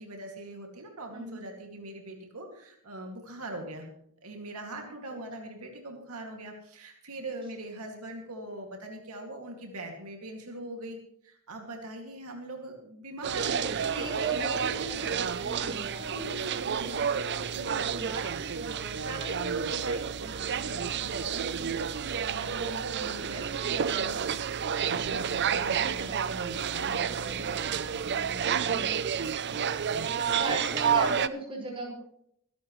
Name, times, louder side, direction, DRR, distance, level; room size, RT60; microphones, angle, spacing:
voice 1, 0.0-3.9 4.2-11.0 11.2-15.8 16.1-21.8 22.2-24.2 24.7-28.8, right 1 dB, 90° right, 2 dB, 2.4 m, -41 dB
voice 2, 1.1-1.5 13.3-13.7 13.9-14.5 15.1-16.2 22.8-23.3 25.6-25.8 28.4-28.9 30.3-31.9, right 2 dB, 25° right, -1 dB, 5.3 m, -37 dB
sound 1, 13.2-31.3, right 7 dB, 50° right, 0.5 m, -30 dB
23.0 x 11.0 x 3.2 m, 0.71 s
head